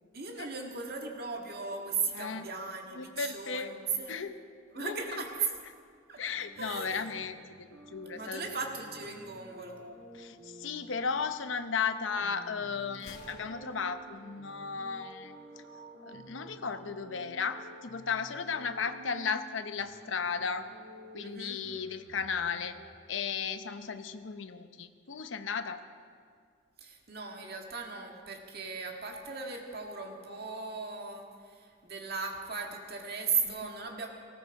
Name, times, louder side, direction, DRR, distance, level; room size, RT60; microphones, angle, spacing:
voice 1, 0.1-4.2 4.7-5.5 6.1-6.2 6.6-6.9 8.1-9.8 21.2-21.6 26.8-34.1, right 5 dB, 55° right, 2 dB, 1.9 m, -37 dB
voice 2, 2.1-2.5 2.9-3.7 4.1-4.3 4.7-5.2 6.2-8.5 10.1-15.3 16.0-20.7 21.1-22.8 23.1-25.8 33.4-33.7, left 5 dB, 85° left, 9 dB, 0.8 m, -35 dB
sound 1, 6.4-22.9, equal, 90° right, 1.7 m, -52 dB
Gunshot gunfire, 12.9-14.9, left 3 dB, 55° left, 1.4 m, -55 dB
19.0 x 15.5 x 4.8 m, 2.1 s
head